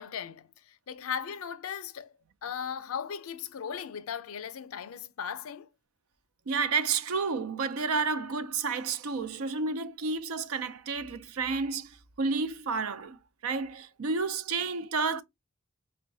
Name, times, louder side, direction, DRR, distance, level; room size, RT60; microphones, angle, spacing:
voice 1, 0.0-2.1 2.4-5.7, left 7 dB, 75° left, 0.5 m, -37 dB
voice 2, 6.5-15.2, right 4 dB, 85° right, 0.5 m, -31 dB
5.4 x 2.2 x 2.6 m
head